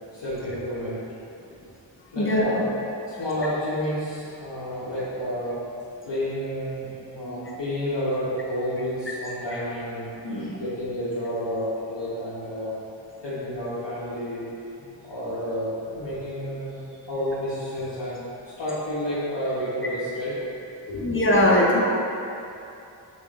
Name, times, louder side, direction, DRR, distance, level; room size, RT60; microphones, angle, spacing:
voice 1, 0.1-1.1 2.0-2.8 3.1-5.6 5.9-12.7 13.2-14.4 15.0-18.2 18.6-20.4 20.9-21.2, equal, 70° left, -12 dB, 1.5 m, -30 dB
voice 2, 20.9-21.8, left 1 dB, 25° left, -4 dB, 0.9 m, -20 dB
6.2 x 4.4 x 3.8 m, 2.7 s
wide cardioid pair, 80°, 45 cm